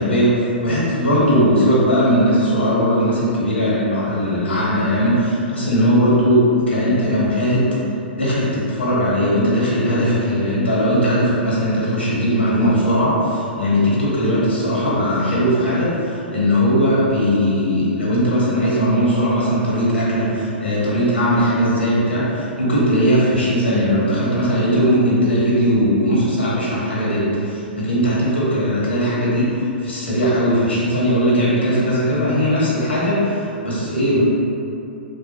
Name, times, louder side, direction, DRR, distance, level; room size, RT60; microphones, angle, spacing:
voice 1, 0.0-7.7 8.2-29.6 29.8-34.2, equal, 85° left, -8 dB, 1.4 m, -18 dB
4.5 x 2.2 x 3.0 m, 2.7 s
figure-of-eight pair, 110°, 6 cm